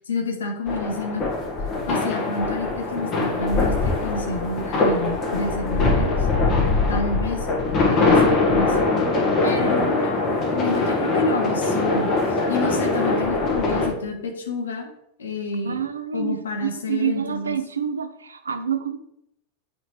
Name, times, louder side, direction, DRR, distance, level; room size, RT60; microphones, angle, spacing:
voice 1, 0.1-1.3 1.9-6.3 6.9-7.5 7.8-8.8 9.4-10.2 10.5-14.9 15.2-15.8 16.1-17.6, left 3 dB, 70° left, 3 dB, 1.3 m, -29 dB
sound 1, 0.7-13.9, left 3 dB, 35° left, 1.7 m, -22 dB
voice 2, 15.6-19.0, right 7 dB, 70° right, 9 dB, 0.6 m, -27 dB
8.4 x 4.9 x 3.3 m, 0.79 s
figure-of-eight pair, 90°, 0 cm